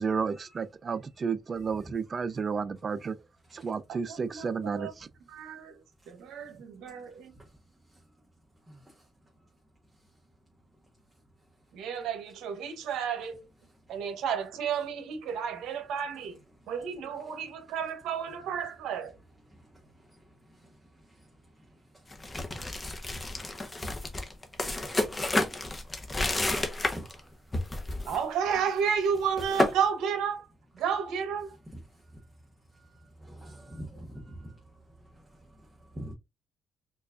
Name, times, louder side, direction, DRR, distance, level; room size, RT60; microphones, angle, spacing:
voice 1, 0.0-3.2 3.5-5.1, right 5 dB, 40° right, 0.4 m, -32 dB
voice 2, 4.3-4.9 5.3-5.8 6.1-7.3 11.7-13.4 13.9-16.4 16.7-19.1 28.1-30.5 30.8-31.5, right 7 dB, 85° right, 0.8 m, -31 dB
sound 1, 22.1-27.2 27.5-28.2 28.5-28.7 29.1-29.7, left 2 dB, 20° left, 0.8 m, -30 dB
voice 3, 26.9-27.3 33.2-34.5 36.0-36.1, right 1 dB, 15° right, 0.9 m, -42 dB
4.5 x 2.4 x 2.4 m
cardioid pair, 90°, 0 cm